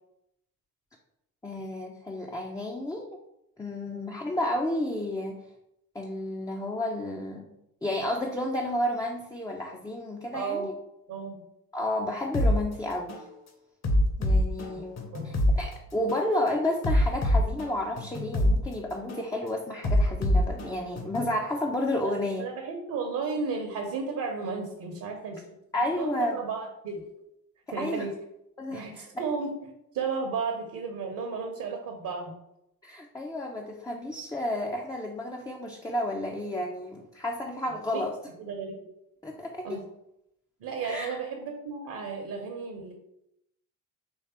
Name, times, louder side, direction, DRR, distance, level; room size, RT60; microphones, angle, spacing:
voice 1, 1.4-3.2 3.6-5.4 5.9-7.5 7.8-10.7 11.7-13.2 14.2-22.4 25.7-26.4 27.8-28.1 28.6-29.2 32.8-38.2 39.2-39.8 40.8-41.2, left 1 dB, 10° left, 0 dB, 0.5 m, -31 dB
voice 2, 3.8-4.1 10.3-10.7 11.1-11.4 15.1-15.3 22.0-25.4 26.0-27.0 27.7-28.1 28.7-32.3 37.7-38.0 38.4-38.8 39.6-39.8 40.6-42.9, right 5 dB, 50° right, 2 dB, 0.9 m, -34 dB
sound 1, 12.3-12.6 13.1-13.3 13.8-15.6 16.1-16.3 16.8-18.6 19.1-19.3 19.8-21.3, left 1 dB, 35° left, 0.9 m, -24 dB
4.6 x 3.2 x 2.9 m, 0.82 s
figure-of-eight pair, 45°, 44 cm